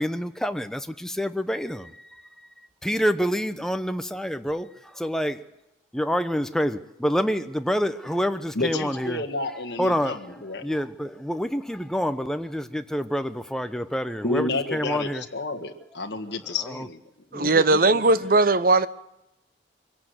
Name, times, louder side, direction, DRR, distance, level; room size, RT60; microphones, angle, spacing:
voice 1, 0.0-2.0 2.8-5.5 5.9-9.2 9.8-10.2 10.6-15.2 16.6-16.9 17.3-17.8, equal, 5° left, 0.9 m, -27 dB
voice 2, 8.6-10.6 14.2-17.0, left 2 dB, 60° left, 1.8 m, -30 dB
voice 3, 17.3-18.9, right 3 dB, 50° right, 0.9 m, -19 dB
24.5 x 17.0 x 8.0 m
head